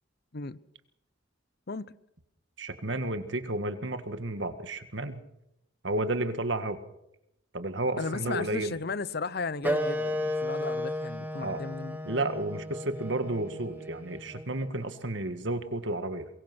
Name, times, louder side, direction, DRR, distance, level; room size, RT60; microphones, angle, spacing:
voice 1, 2.6-5.2 5.8-6.8 7.5-8.8 11.4-11.6 12.1-16.3, right 2 dB, 60° right, 1.9 m, -32 dB
voice 2, 8.0-12.0, left 4 dB, 50° left, 0.8 m, -35 dB
Wind instrument woodwind instrument, 9.6-14.7, left 1 dB, 10° right, 2.0 m, -34 dB
23.5 x 22.0 x 6.2 m
head